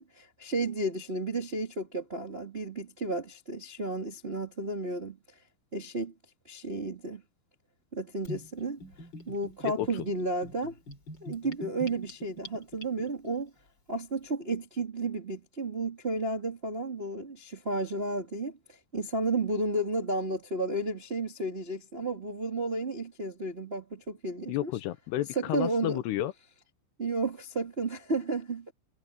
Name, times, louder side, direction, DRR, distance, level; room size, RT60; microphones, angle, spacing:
voice 1, 0.0-5.2 5.7-6.1 6.5-7.2 7.9-8.8 9.3-10.8 11.2-13.5 13.9-18.6 18.9-24.7 25.3-26.0 27.0-28.7, right 2 dB, 80° right, 0.5 m, -32 dB
Gurgling / Bathtub (filling or washing), 8.2-13.3, equal, 25° left, 3.6 m, -44 dB
voice 2, 24.5-26.3, left 14 dB, 80° left, 2.6 m, -31 dB
omnidirectional pair, 5.5 m